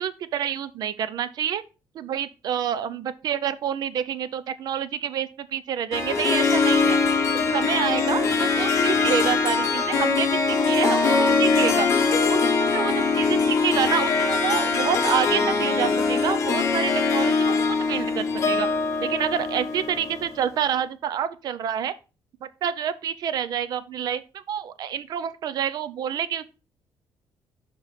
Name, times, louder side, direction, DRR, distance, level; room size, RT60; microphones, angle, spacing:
voice 1, 0.0-1.6 1.9-7.0 7.5-11.9 12.3-12.4 12.7-18.7 19.0-21.9 22.4-26.6, right 9 dB, 50° right, 0.4 m, -28 dB
Harp, 5.9-20.4, left 4 dB, 35° left, 0.9 m, -22 dB
5.3 x 4.7 x 4.1 m
cardioid pair, 180°, 9 cm